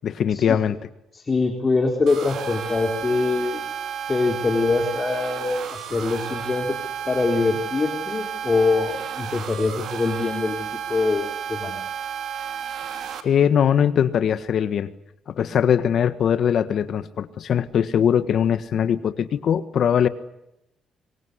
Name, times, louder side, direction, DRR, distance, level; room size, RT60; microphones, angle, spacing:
voice 1, 0.0-0.8 13.2-14.9 15.3-20.1, left 8 dB, 65° left, 12 dB, 1.6 m, -21 dB
voice 2, 1.1-3.6 4.1-6.8 7.1-11.8, left 3 dB, 30° left, 2 dB, 4.1 m, -23 dB
sound 1, 2.1-13.2, right 8 dB, 70° right, 3.1 m, -32 dB
26.0 x 23.5 x 8.2 m, 0.86 s
cardioid pair, 90°, 0 cm